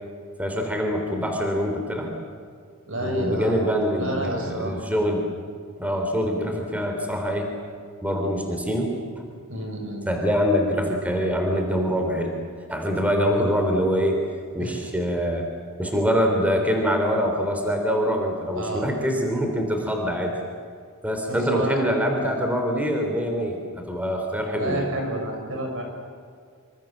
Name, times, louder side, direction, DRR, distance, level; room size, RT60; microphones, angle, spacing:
voice 1, 0.4-2.1 3.0-5.3 5.8-7.5 8.0-9.2 10.0-12.4 12.7-14.2 14.5-15.5 15.8-20.3 21.0-24.9, equal, 5° right, 3 dB, 3.5 m, -24 dB
voice 2, 2.9-3.6 4.0-4.7 9.5-10.1 14.6-14.8 18.6-18.9 21.3-21.8 24.5-25.8, right 1 dB, 65° right, 2 dB, 6.8 m, -29 dB
26.5 x 26.0 x 7.5 m, 2.2 s
head